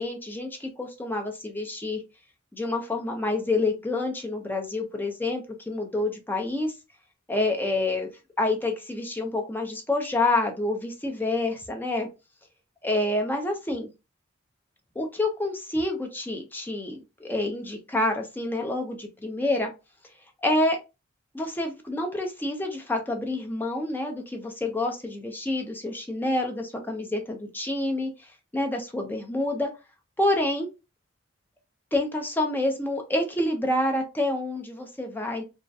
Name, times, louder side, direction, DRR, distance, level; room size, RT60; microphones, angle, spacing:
voice 1, 0.0-2.0 2.5-6.7 7.3-8.1 8.4-12.1 12.8-13.9 15.0-19.7 20.4-20.8 21.3-28.1 28.5-29.7 30.2-30.7 31.9-35.4, left 2 dB, 10° left, 2 dB, 0.4 m, -28 dB
2.3 x 2.1 x 2.6 m, 0.28 s
head